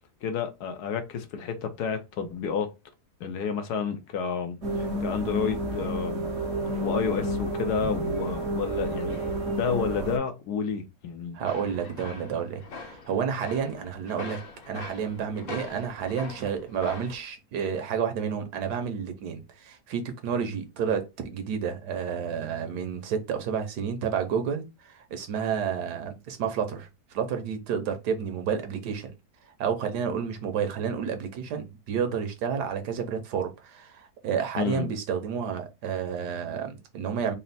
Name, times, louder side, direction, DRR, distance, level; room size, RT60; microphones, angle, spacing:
voice 1, 0.2-2.7 3.2-6.3 6.8-9.2 9.5-11.4 34.6-34.9, left 6 dB, 80° left, 1.3 m, -30 dB
sound 1, 4.6-10.2, right 1 dB, 45° right, 1.4 m, -30 dB
voice 2, 11.3-14.4 14.7-29.1 29.6-37.3, right 7 dB, 85° right, 1.4 m, -30 dB
heavy machinery banging, 11.5-17.2, left 4 dB, 55° left, 1.1 m, -42 dB
4.2 x 2.1 x 4.0 m
omnidirectional pair, 1.7 m